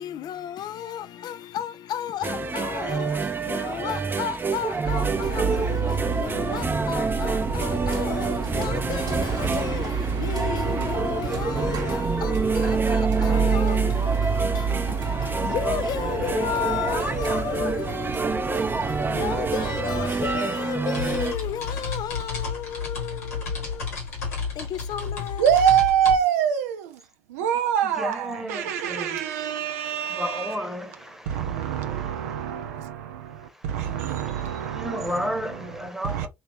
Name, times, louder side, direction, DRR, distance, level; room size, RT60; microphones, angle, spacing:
voice 1, 0.0-25.5, left 9 dB, 60° left, 0.4 m, -33 dB
sound 1, 2.2-21.3, right 4 dB, 25° right, 0.6 m, -28 dB
sound 2, 4.8-20.4, right 5 dB, 55° right, 1.1 m, -28 dB
sound 3, 19.6-19.7 19.9-26.2, left 5 dB, 90° left, 1.2 m, -32 dB
voice 2, 25.4-30.6 31.3-35.3 36.1-36.3, right 9 dB, 80° right, 0.4 m, -25 dB
voice 3, 27.8-32.4 33.4-36.3, equal, 5° right, 1.0 m, -34 dB
3.1 x 2.6 x 3.3 m
hypercardioid pair, 50°, 8 cm